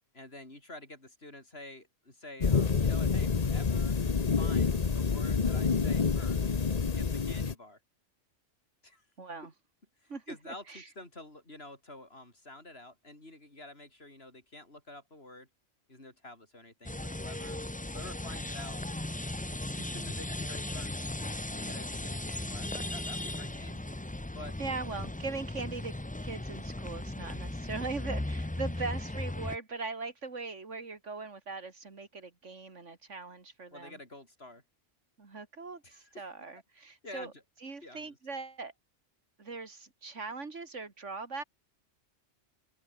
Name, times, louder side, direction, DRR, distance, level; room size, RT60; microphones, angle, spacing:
voice 1, 0.1-4.0 4.4-6.5 6.9-7.8 8.8-9.1 10.0-15.5 15.9-17.6 17.9-18.8 19.5-21.0 21.5-23.8 24.3-24.6 33.7-34.6 35.8-36.3 37.0-37.3 37.8-38.2, left 2 dB, 50° left, 5.5 m, -49 dB
sound 1, 2.4-7.5, left 5 dB, 35° left, 1.0 m, -28 dB
voice 2, 9.2-9.5 10.1-10.9 24.6-25.9 26.2-34.0 35.2-37.3 37.6-38.7 39.4-41.4, right 4 dB, 70° right, 2.7 m, -40 dB
sound 2, 16.8-29.6, left 1 dB, 10° left, 0.5 m, -37 dB
open air
omnidirectional pair, 1.3 m